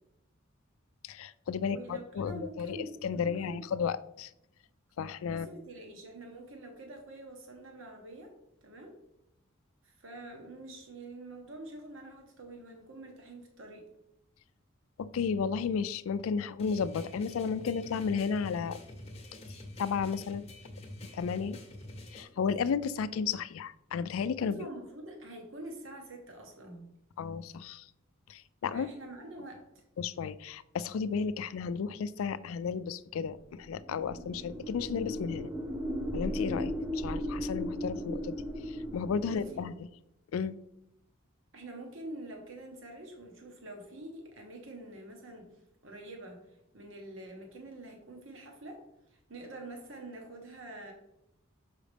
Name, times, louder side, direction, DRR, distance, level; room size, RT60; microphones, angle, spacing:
voice 1, 1.0-4.3 5.0-5.5 15.0-18.8 19.8-20.5 21.1-21.6 22.1-24.7 27.2-27.8 28.3-28.9 30.0-35.5 36.1-38.4 38.7-39.7 40.3-40.6, left 6 dB, 80° left, 15 dB, 0.3 m, -33 dB
voice 2, 1.6-3.6 5.3-8.3 8.6-8.9 9.8-13.9 24.4-26.9 28.7-29.8 39.2-39.7 41.5-45.5 45.8-48.8 49.1-50.9, right 1 dB, 65° right, 2 dB, 1.2 m, -46 dB
sound 1, 16.6-22.2, left 1 dB, 30° left, 0.9 m, -47 dB
sound 2, 33.6-39.7, equal, 15° right, 0.6 m, -37 dB
6.3 x 4.8 x 3.4 m, 0.82 s
head